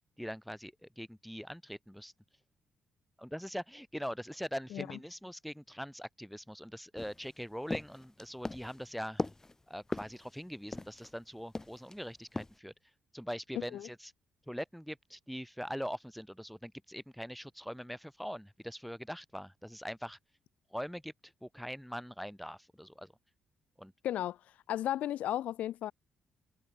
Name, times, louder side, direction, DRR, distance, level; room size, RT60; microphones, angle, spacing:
voice 1, 0.2-2.1 3.2-9.3 9.7-12.7 13.1-14.1 14.5-20.2 20.7-23.1 23.8-23.9, equal, ahead, 1.8 m, -42 dB
sound 1, 7.0-11.2 11.6-12.0 12.4-12.6, left 2 dB, 20° left, 1.9 m, -39 dB
voice 2, 13.6-13.9 24.0-24.4 24.7-25.9, left 12 dB, 75° left, 0.5 m, -34 dB
open air
supercardioid pair, 55°, 2 cm